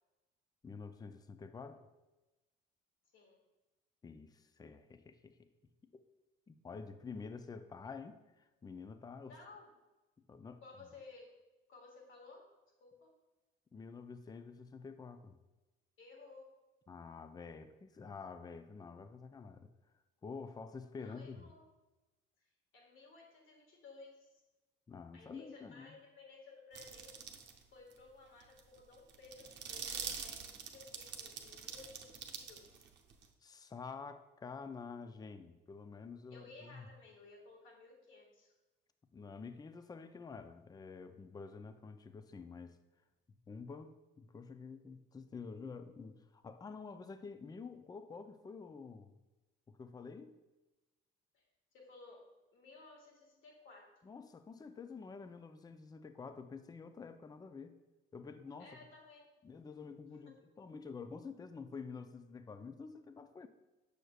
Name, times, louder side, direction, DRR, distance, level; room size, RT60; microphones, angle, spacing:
voice 1, 0.6-1.9 4.0-5.5 6.5-9.4 10.3-10.6 13.7-15.4 16.9-19.7 20.2-21.5 24.9-25.9 33.4-36.9 39.1-42.8 43.5-49.2 49.7-50.4 54.0-57.8 58.1-58.9 59.4-63.5, left 5 dB, 20° left, 10 dB, 0.4 m, -49 dB
voice 2, 9.2-9.7 10.6-11.3 11.7-12.5 12.8-13.1 16.0-16.5 21.0-21.7 22.7-24.4 25.1-27.1 27.7-32.9 36.3-38.5 51.3-51.4 51.7-52.3 52.5-53.9 58.6-59.2, left 3 dB, 70° left, -1 dB, 1.7 m, -57 dB
sound 1, 26.8-27.6 27.9-28.0 28.4-33.3, right 6 dB, 60° right, 0.8 m, -45 dB
6.4 x 6.4 x 2.4 m, 1.1 s
supercardioid pair, 80°, 21 cm